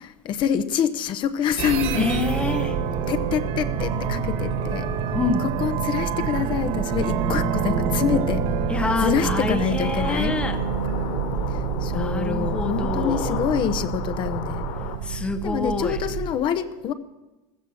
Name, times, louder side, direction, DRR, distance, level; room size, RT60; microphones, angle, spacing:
voice 1, 0.2-2.1 3.1-4.9 5.4-8.5 9.0-10.4 11.5-14.7 15.4-16.9, left 8 dB, 35° left, 0.9 m, -26 dB
sound 1, 1.6-16.2, right 6 dB, 50° right, 2.1 m, -27 dB
voice 2, 1.9-2.8 5.1-5.5 8.7-10.6 11.9-13.4 15.0-16.0, left 3 dB, 10° left, 0.8 m, -27 dB
sound 2, 9.8-15.0, left 8 dB, 70° left, 3.4 m, -34 dB
15.5 x 14.5 x 6.3 m
supercardioid pair, 150°, 14 cm